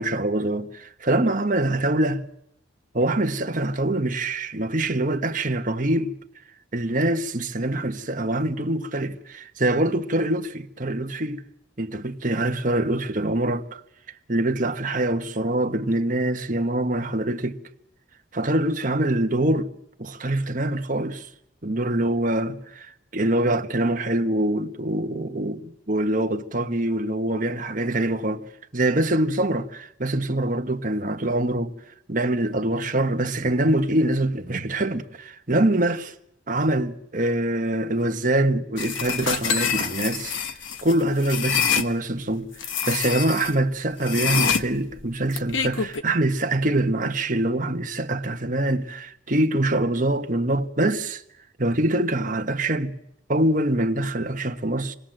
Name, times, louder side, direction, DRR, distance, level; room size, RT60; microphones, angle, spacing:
voice 1, 0.0-2.2 2.9-6.1 6.7-11.5 11.8-13.8 14.3-17.6 18.3-19.7 20.0-21.3 21.6-28.4 28.7-31.7 32.1-36.1 36.5-40.3 40.8-42.5 42.9-51.2 51.6-52.9 53.3-54.9, right 1 dB, 40° right, 1.4 m, -24 dB
sound 1, 38.8-41.9 42.6-43.5 44.0-46.0, left 7 dB, 80° left, 1.2 m, -26 dB
27.0 x 20.0 x 7.8 m
head